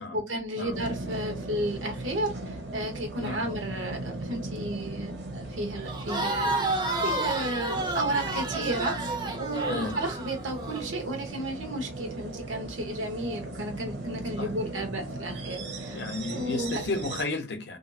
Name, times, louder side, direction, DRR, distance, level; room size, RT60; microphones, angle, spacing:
voice 1, 0.0-6.7 7.0-16.8, right 1 dB, 90° right, 0.9 m, -33 dB
sound 1, 0.7-17.2, right 2 dB, 60° right, 0.7 m, -38 dB
Crowd, 5.9-10.8, right 2 dB, 25° right, 0.4 m, -30 dB
voice 2, 9.7-10.0 14.4-14.5 15.9-17.8, left 3 dB, 60° left, 0.5 m, -33 dB
2.6 x 2.3 x 2.5 m
head